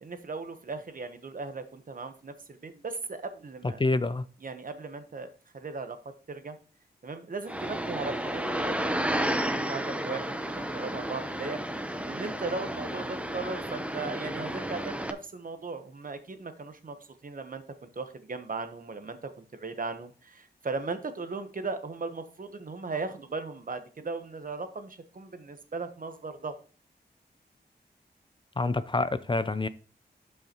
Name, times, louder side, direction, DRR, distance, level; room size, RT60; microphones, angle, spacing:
voice 1, 0.0-3.8 4.4-6.0 6.3-6.6 7.0-11.6 12.0-17.0 17.2-26.6, right 3 dB, 50° right, 1.1 m, -37 dB
voice 2, 3.8-4.2 28.6-29.7, left 3 dB, 30° left, 0.5 m, -27 dB
sound 1, 7.5-15.1, right 1 dB, 5° right, 0.8 m, -32 dB
12.0 x 5.5 x 3.0 m
wide cardioid pair, 70°, 18 cm